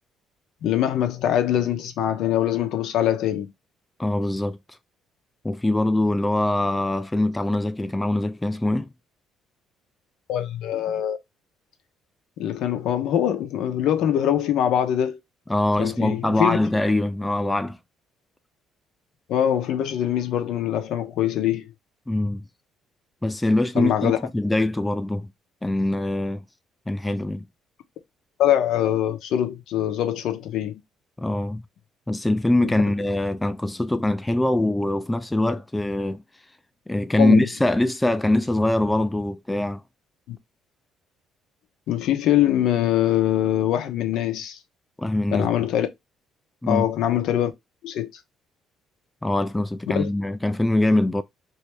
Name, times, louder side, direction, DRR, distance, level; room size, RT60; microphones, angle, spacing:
voice 1, 0.6-3.5 10.3-11.2 12.4-15.2 15.8-16.6 19.3-21.7 23.8-24.2 28.4-30.7 37.2-37.5 40.3-40.4 41.9-44.6 45.3-45.9 46.7-47.5 47.8-48.1 49.9-50.1, left 11 dB, 75° left, 0.7 m, -23 dB
voice 2, 4.0-4.6 5.4-8.9 15.5-17.8 22.1-22.4 23.2-25.3 25.6-26.4 26.9-27.4 31.2-31.6 32.1-36.2 36.9-39.8 45.0-45.7 46.6-46.9 49.2-51.2, left 1 dB, 10° left, 0.3 m, -23 dB
3.1 x 2.7 x 3.3 m
cardioid pair, 85°, 0 cm